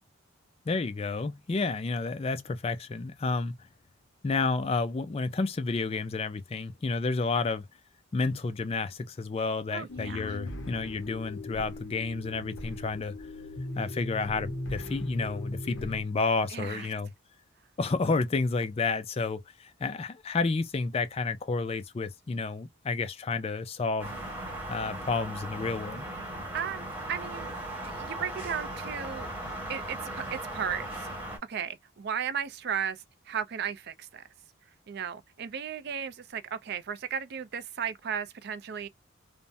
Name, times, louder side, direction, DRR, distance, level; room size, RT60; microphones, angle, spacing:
voice 1, 0.7-3.6 4.2-7.6 8.1-13.1 13.8-17.1 17.8-24.2 24.7-26.1, left 4 dB, 30° left, 0.3 m, -30 dB
voice 2, 9.7-10.4 16.5-16.9 26.5-27.5 27.8-29.3 29.7-30.9 31.5-33.0 33.3-34.2 34.9-38.9, right 8 dB, 50° right, 0.4 m, -35 dB
sound 1, 9.9-16.0, left 1 dB, 60° left, 0.8 m, -39 dB
sound 2, 24.0-31.4, right 1 dB, 10° right, 1.1 m, -38 dB
3.4 x 2.0 x 2.6 m
head